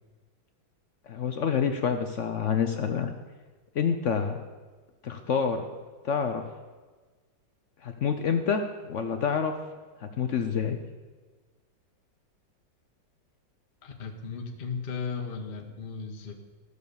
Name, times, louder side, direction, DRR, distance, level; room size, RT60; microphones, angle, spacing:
voice 1, 1.1-3.1 3.7-4.5 5.0-5.7 6.0-6.4 7.8-9.5 10.0-10.8, left 6 dB, 70° left, 7 dB, 0.7 m, -27 dB
voice 2, 13.8-16.3, left 5 dB, 35° left, 3 dB, 1.1 m, -36 dB
13.0 x 6.6 x 6.9 m, 1.4 s
omnidirectional pair, 2.1 m